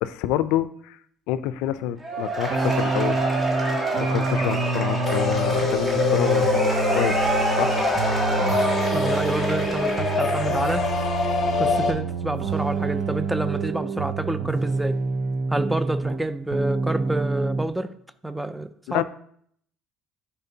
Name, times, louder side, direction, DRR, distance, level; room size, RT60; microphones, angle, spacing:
voice 1, 0.0-1.0 1.3-3.2 4.0-7.7 18.9-19.0, left 13 dB, 90° left, 15 dB, 0.4 m, -28 dB
Cheering / Applause / Crowd, 2.0-10.9, right 2 dB, 20° right, 1.5 m, -28 dB
sound 1, 2.5-16.2 16.5-17.7, right 4 dB, 50° right, 0.6 m, -27 dB
sound 2, 5.1-11.9, left 5 dB, 30° left, 0.8 m, -25 dB
voice 2, 8.9-10.9 11.6-15.0 15.5-17.9 18.2-19.0, right 1 dB, 5° right, 11 dB, 0.3 m, -28 dB
10.5 x 4.3 x 2.8 m, 0.64 s
cardioid pair, 165°, 0 cm